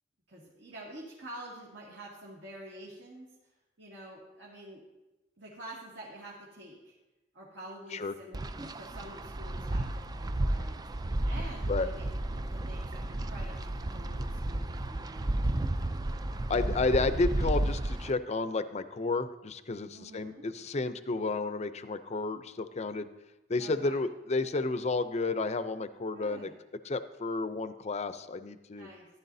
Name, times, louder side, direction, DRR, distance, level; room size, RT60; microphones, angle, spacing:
voice 1, 0.3-3.3 3.8-4.8 5.4-7.0 7.3-16.2 19.9-20.5 23.6-24.0 26.2-26.5 28.7-29.1, right 1 dB, 70° right, -5 dB, 2.1 m, -48 dB
Wind, 8.3-18.1, right 1 dB, 20° right, 0.3 m, -32 dB
voice 2, 16.5-23.1 23.5-26.5 26.8-28.9, left 3 dB, 35° left, 11 dB, 0.5 m, -31 dB
15.0 x 11.0 x 2.7 m, 1.0 s
head